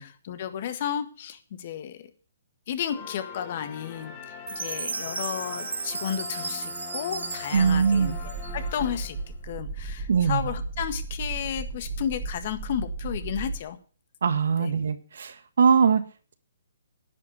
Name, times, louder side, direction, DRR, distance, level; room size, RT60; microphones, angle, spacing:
voice 1, 0.0-2.0 2.7-9.2 9.4-13.8 14.6-14.7, left 9 dB, 45° left, 10 dB, 1.7 m, -33 dB
sound 1, 2.9-9.5, left 8 dB, 30° left, 2.9 m, -42 dB
Chime, 4.5-8.8, right 4 dB, 85° right, 1.4 m, -35 dB
sound 2, 7.5-13.6, right 3 dB, 30° right, 2.0 m, -35 dB
voice 2, 7.5-8.1 10.1-10.5 14.2-16.0, right 6 dB, 70° right, 10 dB, 1.6 m, -22 dB
10.5 x 8.6 x 6.8 m, 0.39 s
hypercardioid pair, 155°, 0 cm